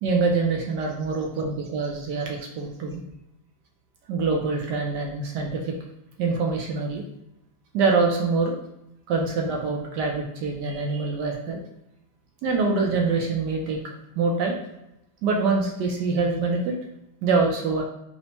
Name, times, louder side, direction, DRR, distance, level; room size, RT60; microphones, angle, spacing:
voice 1, 0.0-3.0 4.1-5.7 6.2-7.0 7.7-8.5 9.1-11.6 12.4-14.5 15.2-16.7 17.2-17.8, right 4 dB, 70° right, 0 dB, 1.0 m, -25 dB
4.2 x 2.1 x 2.8 m, 0.86 s
omnidirectional pair, 2.2 m